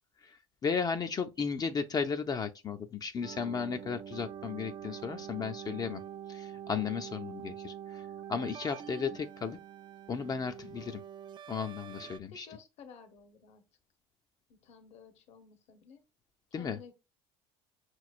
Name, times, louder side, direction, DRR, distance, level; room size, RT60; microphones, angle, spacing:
voice 1, 0.2-6.0 6.3-9.6 10.1-11.0 11.5-12.5 16.5-16.8, left 6 dB, 30° left, 0.4 m, -35 dB
sound 1, 3.2-12.2, right 9 dB, 35° right, 0.4 m, -45 dB
voice 2, 12.3-13.6 14.5-16.0 16.6-16.9, left 5 dB, 55° left, 0.9 m, -54 dB
5.7 x 3.1 x 2.4 m
hypercardioid pair, 80°, 13 cm